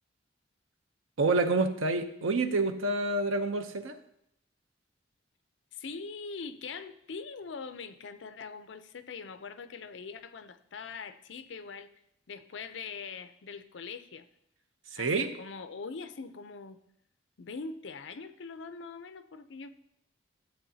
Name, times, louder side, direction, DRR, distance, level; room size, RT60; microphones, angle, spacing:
voice 1, 1.2-4.0 14.9-15.3, right 3 dB, 90° right, 0.7 m, -28 dB
voice 2, 5.7-11.9 12.3-14.3 15.0-16.8 17.4-19.7, left 4 dB, 65° left, 0.5 m, -42 dB
13.0 x 7.8 x 2.7 m
head